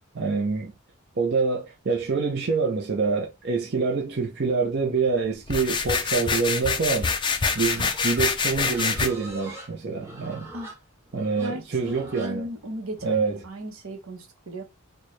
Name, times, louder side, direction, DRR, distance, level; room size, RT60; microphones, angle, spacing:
voice 1, 0.1-0.7 1.2-7.1 7.5-10.5 11.1-12.4 13.0-13.4, right 4 dB, 45° right, 0.5 m, -26 dB
sound 1, 5.5-9.1, left 5 dB, 20° left, 0.3 m, -26 dB
Livestock farm animals working animals, 7.4-13.5, right 2 dB, 10° right, 0.9 m, -43 dB
voice 2, 11.4-14.6, equal, 70° right, 0.9 m, -36 dB
4.3 x 2.1 x 3.1 m
head